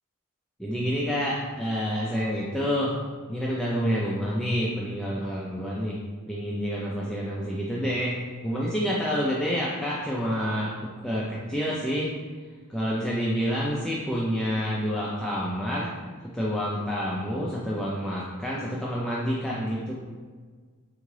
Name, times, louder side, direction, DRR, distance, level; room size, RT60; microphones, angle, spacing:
voice 1, 0.6-3.0 3.3-6.0 6.3-12.1 12.7-15.9 16.2-20.0, equal, 5° left, -6 dB, 0.3 m, -28 dB
3.6 x 3.6 x 3.2 m, 1.5 s
head